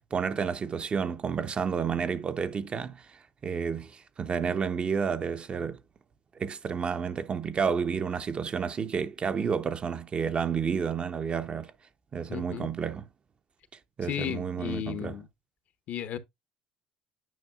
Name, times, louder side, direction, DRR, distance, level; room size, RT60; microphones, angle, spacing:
voice 1, 0.1-3.0 3.4-5.8 6.4-11.7 12.1-13.0 14.0-15.1, right 6 dB, 35° right, 0.7 m, -30 dB
voice 2, 12.3-12.7 14.0-15.3 15.9-16.2, left 9 dB, 55° left, 0.9 m, -34 dB
9.4 x 5.4 x 2.4 m
hypercardioid pair, 70°, 3 cm